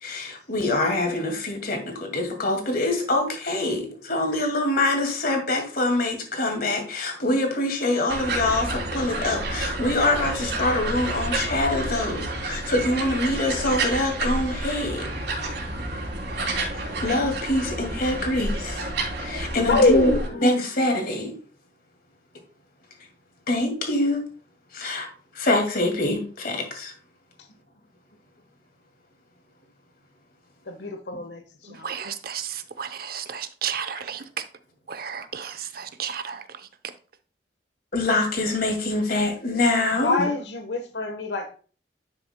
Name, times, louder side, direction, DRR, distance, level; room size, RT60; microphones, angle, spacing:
voice 1, 0.0-15.1 16.7-18.8 19.2-21.3 23.5-24.2 24.7-25.1 25.3-26.9 37.9-40.3, left 2 dB, 55° left, 2.3 m, -25 dB
sound 1, 8.1-20.3, right 2 dB, 75° right, 3.0 m, -30 dB
voice 2, 19.7-20.3 30.7-31.4 31.7-32.0 40.0-41.6, left 2 dB, 75° left, 1.2 m, -24 dB
voice 3, 31.8-32.5 32.8-34.2 34.9-36.4, right 8 dB, 55° right, 0.7 m, -32 dB
10.5 x 6.8 x 2.2 m
head